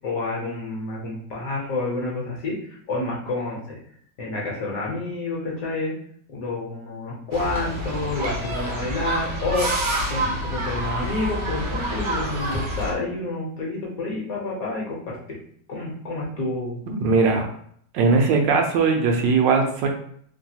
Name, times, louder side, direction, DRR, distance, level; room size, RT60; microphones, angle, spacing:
voice 1, 0.0-3.8 4.2-5.9 6.3-9.7 10.1-15.2 15.7-16.8, left 2 dB, 60° left, -4 dB, 1.1 m, -29 dB
sound 1, 7.3-12.9, right 1 dB, 60° right, 0.7 m, -27 dB
voice 2, 16.9-17.5 17.9-19.9, right 4 dB, 85° right, 3 dB, 1.3 m, -19 dB
3.2 x 2.2 x 2.7 m, 0.63 s
omnidirectional pair, 1.9 m